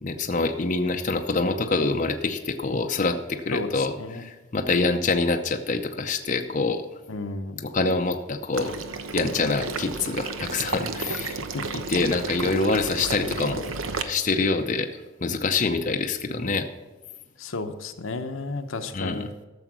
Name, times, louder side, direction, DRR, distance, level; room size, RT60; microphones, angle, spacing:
voice 1, 0.0-6.9 7.6-8.7 9.1-11.4 11.9-14.9 15.2-16.7 18.9-19.2, left 3 dB, 40° left, 5 dB, 0.6 m, -25 dB
voice 2, 3.5-4.2 7.1-7.7 11.5-11.8 17.4-19.3, left 3 dB, 80° left, 7 dB, 0.9 m, -33 dB
Water / Liquid, 8.5-14.0, right 4 dB, 80° right, 0.9 m, -32 dB
13.0 x 7.0 x 6.2 m, 1.2 s
head